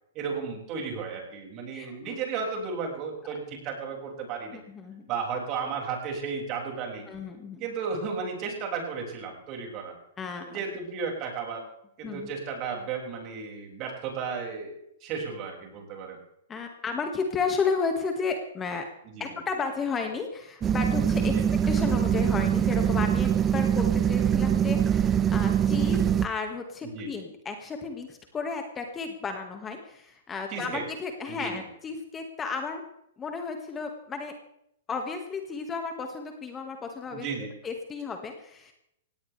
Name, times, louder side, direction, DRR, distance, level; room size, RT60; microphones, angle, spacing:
voice 1, 0.1-4.6 5.1-7.1 7.6-9.9 10.5-11.6 12.0-14.7 15.0-16.2 19.1-19.2 21.3-21.4 26.9-27.1 30.5-30.8 31.3-31.6 37.1-37.5, right 5 dB, 35° right, 0 dB, 6.1 m, -34 dB
voice 2, 1.7-2.2 4.5-5.1 7.1-7.7 10.2-10.6 12.0-12.3 16.5-18.9 19.2-21.4 21.7-32.8 33.2-34.3 34.9-37.3 37.6-38.7, left 5 dB, 20° left, 4 dB, 1.9 m, -33 dB
sound 1, 20.6-26.3, right 9 dB, 20° right, 0.6 m, -23 dB
18.5 x 17.5 x 3.4 m, 0.78 s
hypercardioid pair, 130°, 0 cm